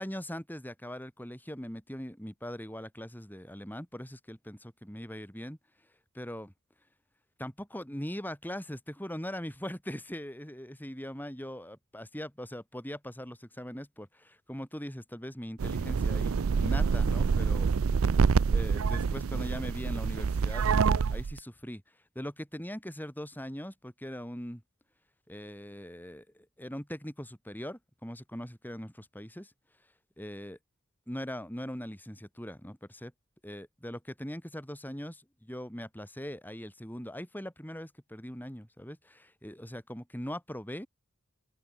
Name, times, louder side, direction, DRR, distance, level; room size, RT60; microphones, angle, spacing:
voice 1, 0.0-5.6 6.1-6.5 7.4-17.7 18.5-21.8 22.1-24.6 25.3-29.5 30.2-30.6 31.1-33.1 33.4-40.9, equal, 10° left, 7.9 m, -41 dB
sound 1, 15.6-21.4, right 5 dB, 70° right, 0.5 m, -26 dB
head